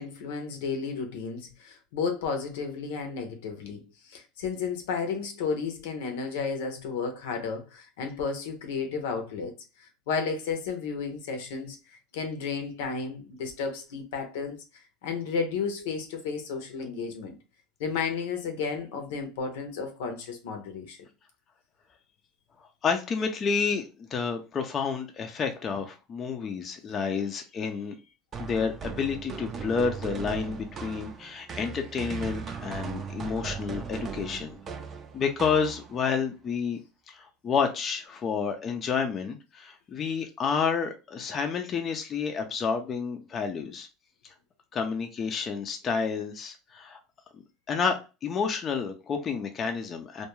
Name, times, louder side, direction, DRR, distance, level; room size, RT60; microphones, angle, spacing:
voice 1, 0.0-11.8 12.1-14.6 15.0-17.4 17.8-21.0, left 5 dB, 80° left, 0.6 m, -33 dB
voice 2, 22.8-28.0 28.4-34.6 35.1-36.8 37.1-43.9 44.7-47.0 47.3-47.4 47.7-50.3, left 5 dB, 35° left, 0.4 m, -30 dB
sound 1, 28.3-36.1, right 6 dB, 35° right, 0.5 m, -38 dB
2.2 x 2.2 x 3.0 m
supercardioid pair, 100°, 0 cm